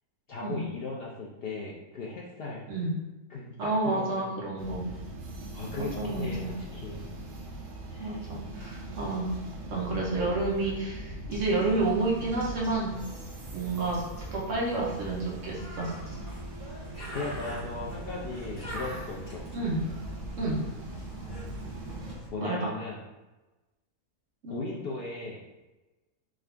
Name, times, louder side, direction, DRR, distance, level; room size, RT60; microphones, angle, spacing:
voice 1, 0.3-2.7 3.3-4.3 4.9-5.0 5.5-7.1 7.9-8.2 17.1-19.4 22.3-23.0 24.5-25.4, left 3 dB, 80° left, -4 dB, 0.5 m, -37 dB
voice 2, 3.6-4.9 5.8-6.6 8.0-13.1 13.5-14.1 14.3-16.0 19.5-19.8 20.4-20.6 22.4-22.7 24.4-24.6, right 2 dB, 60° right, -4 dB, 1.1 m, -30 dB
sound 1, 4.6-22.1, right 1 dB, 80° right, 1.2 m, -41 dB
Bird, 11.3-22.3, right 1 dB, 35° left, 1.0 m, -43 dB
3.7 x 2.5 x 3.3 m, 1.1 s
omnidirectional pair, 1.6 m